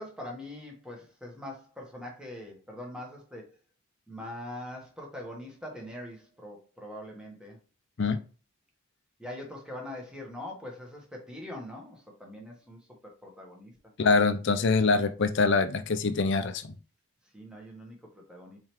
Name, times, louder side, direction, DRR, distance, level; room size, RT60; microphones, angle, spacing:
voice 1, 0.0-3.4 4.1-7.6 9.2-12.8 13.2-13.7 17.3-18.6, left 1 dB, 5° right, 1.1 m, -42 dB
voice 2, 14.0-16.7, left 4 dB, 55° left, 0.5 m, -24 dB
4.5 x 3.7 x 3.0 m
head